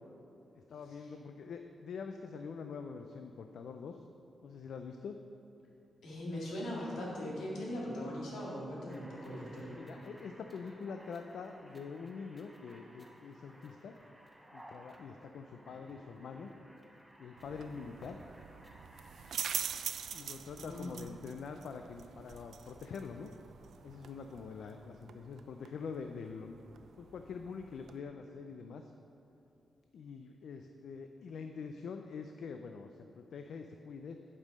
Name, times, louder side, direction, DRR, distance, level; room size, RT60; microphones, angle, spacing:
voice 1, 0.5-4.0 4.4-5.2 9.7-13.9 14.5-16.5 17.2-18.2 20.1-23.3 23.8-26.5 27.0-28.9 29.9-34.2, left 5 dB, 70° left, 6 dB, 0.3 m, -45 dB
voice 2, 6.0-9.8 20.6-21.0, left 1 dB, 85° left, -5 dB, 2.0 m, -40 dB
sound 1, 8.9-19.4, equal, 5° right, 0.7 m, -57 dB
sound 2, 17.4-28.0, right 7 dB, 75° right, 0.4 m, -45 dB
8.2 x 5.4 x 5.1 m, 2.7 s
wide cardioid pair, 170°, 0 cm